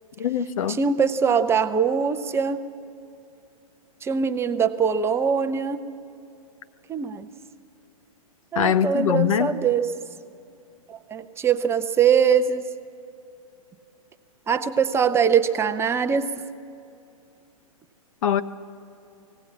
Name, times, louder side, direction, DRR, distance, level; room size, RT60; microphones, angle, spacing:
voice 1, 0.2-0.8 8.5-9.5 18.2-18.4, left 9 dB, 65° left, 12 dB, 0.9 m, -22 dB
voice 2, 0.7-2.6 4.0-5.8 6.9-7.3 8.5-9.9 10.9-12.6 14.5-16.3, right 6 dB, 15° right, 9 dB, 0.6 m, -22 dB
19.0 x 16.5 x 8.6 m, 2.5 s
hypercardioid pair, 125°, 18 cm